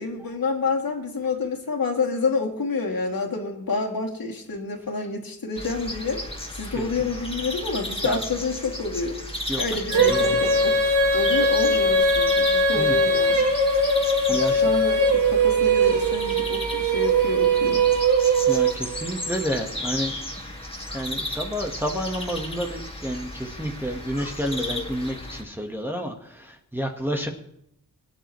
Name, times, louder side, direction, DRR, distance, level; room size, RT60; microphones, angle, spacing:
voice 1, 0.0-6.2 6.5-9.2 9.6-10.7 11.1-13.4 14.3-17.8, left 4 dB, 65° left, 0 dB, 2.6 m, -28 dB
sound 1, 5.6-25.4, left 1 dB, 15° left, 2.1 m, -34 dB
voice 2, 6.7-7.1 8.0-8.2 9.5-9.6 10.0-10.4 12.7-13.0 14.3-14.6 18.5-20.2 20.9-27.3, equal, 5° right, 1 dB, 1.4 m, -30 dB
Female singing, 9.9-19.1, right 2 dB, 50° right, 2.9 m, -20 dB
22.5 x 10.0 x 3.1 m, 0.75 s
wide cardioid pair, 120°, 38 cm